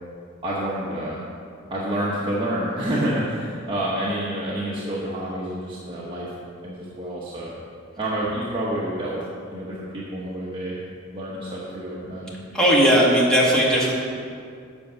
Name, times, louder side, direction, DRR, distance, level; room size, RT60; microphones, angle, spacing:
voice 1, 0.4-1.2 1.7-6.3 6.6-7.5 8.0-10.8 11.1-12.4, right 1 dB, 25° right, -7 dB, 1.1 m, -28 dB
voice 2, 12.5-13.9, equal, 5° left, -5 dB, 1.6 m, -17 dB
8.4 x 6.4 x 5.7 m, 2.3 s
head